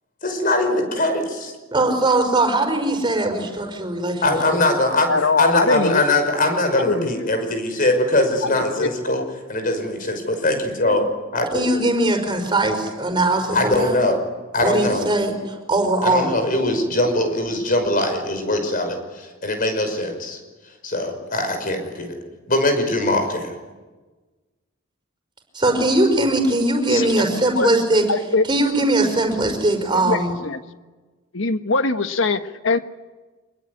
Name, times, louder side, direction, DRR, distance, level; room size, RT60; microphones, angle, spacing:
voice 1, 0.2-1.5 4.2-9.2 9.5-11.1 11.3-11.8 13.5-14.2 14.5-15.1 16.0-20.4 20.8-22.2 22.5-23.5, left 2 dB, 45° left, 7 dB, 5.8 m, -21 dB
voice 2, 1.7-4.3 11.5-14.0 14.6-16.4 25.5-28.1 28.4-30.3, right 2 dB, 25° right, 4 dB, 5.3 m, -20 dB
voice 3, 5.1-6.1 6.9-7.1 8.6-9.2 26.9-27.7 28.1-28.4 30.0-30.6 31.3-32.8, left 3 dB, 70° left, 9 dB, 1.4 m, -22 dB
26.0 x 21.0 x 9.9 m, 1.2 s
head